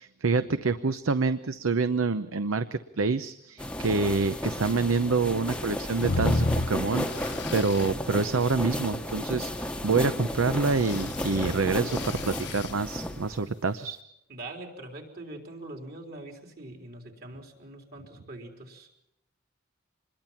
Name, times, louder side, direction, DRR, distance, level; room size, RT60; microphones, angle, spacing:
voice 1, 0.0-14.0, right 4 dB, 90° right, 12 dB, 0.7 m, -27 dB
sound 1, 3.6-13.5, left 1 dB, 5° left, 1.0 m, -33 dB
sound 2, 6.0-7.9 10.7-12.7, left 2 dB, 55° left, 1.0 m, -31 dB
voice 2, 14.3-18.9, right 2 dB, 50° right, 2 dB, 3.9 m, -43 dB
26.5 x 21.5 x 5.8 m, 0.80 s
head